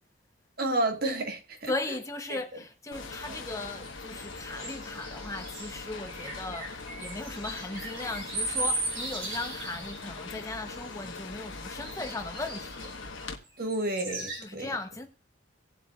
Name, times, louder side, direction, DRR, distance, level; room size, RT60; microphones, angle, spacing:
voice 1, 0.6-1.7 2.3-2.4 13.6-14.7, right 2 dB, 45° right, 1.4 m, -30 dB
voice 2, 1.7-13.0 14.4-15.1, left 2 dB, 15° left, 0.7 m, -37 dB
sound 1, 2.9-13.4, left 3 dB, 65° left, 1.2 m, -42 dB
sound 2, 3.8-10.1 10.5-11.1 11.8-13.2 13.7-14.4, right 2 dB, 75° right, 5.4 m, -37 dB
18.0 x 7.7 x 2.3 m
head